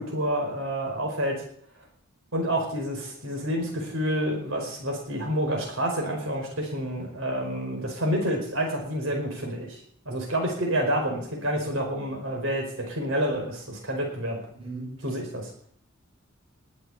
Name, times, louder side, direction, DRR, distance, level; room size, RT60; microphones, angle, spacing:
voice 1, 0.0-1.4 2.3-9.8 10.0-14.4 15.0-15.5, equal, 75° right, 1 dB, 4.9 m, -28 dB
voice 2, 14.5-15.2, right 2 dB, 25° right, -1 dB, 6.9 m, -39 dB
20.5 x 8.0 x 8.4 m, 0.63 s
head